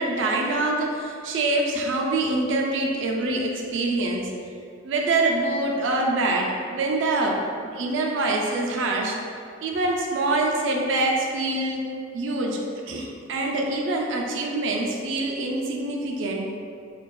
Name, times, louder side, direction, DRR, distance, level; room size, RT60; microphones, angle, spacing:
voice 1, 0.0-4.3 4.8-7.4 7.7-9.2 9.6-11.9 12.1-12.6 12.9-16.5, right 2 dB, 70° right, 0 dB, 0.3 m, -25 dB
2.6 x 2.2 x 2.2 m, 2.3 s
head